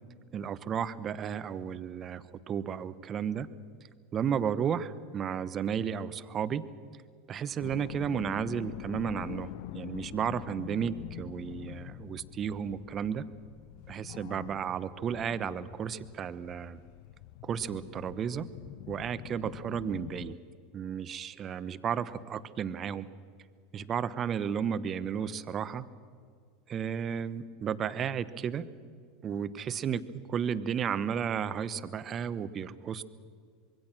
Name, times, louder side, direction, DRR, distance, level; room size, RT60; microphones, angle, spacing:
voice 1, 0.3-3.5 4.1-6.6 7.3-13.3 13.9-16.8 17.4-18.5 18.9-20.3 20.7-23.1 23.7-25.8 26.7-28.7 29.2-33.0, right 8 dB, 35° right, 15 dB, 1.1 m, -33 dB
sound 1, 7.6-20.3, left 18 dB, 65° left, 0.6 m, -45 dB
25.5 x 22.0 x 6.2 m, 2.1 s
hypercardioid pair, 100°, 0 cm